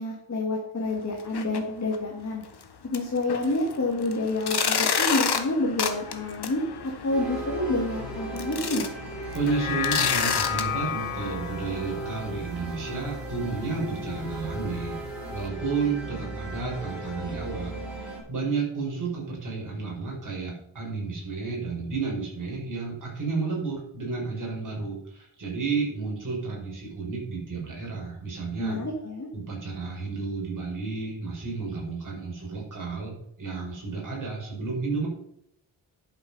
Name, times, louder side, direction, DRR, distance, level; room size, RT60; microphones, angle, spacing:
voice 1, 0.0-2.4 2.9-8.9 28.6-29.3, left 2 dB, 35° left, -2 dB, 2.2 m, -28 dB
sound 1, 1.2-1.6 1.9-2.0 2.5-2.6 2.9-10.6, left 6 dB, 50° left, 1.2 m, -30 dB
sound 2, 7.1-18.2, right 1 dB, ahead, 5.2 m, -37 dB
voice 2, 9.3-15.0 15.3-28.8 29.3-35.1, right 4 dB, 40° right, -2 dB, 5.3 m, -32 dB
sound 3, 9.4-13.9 14.3-14.4, left 9 dB, 70° left, 0.8 m, -33 dB
11.0 x 7.4 x 5.5 m, 0.71 s
wide cardioid pair, 150°, 49 cm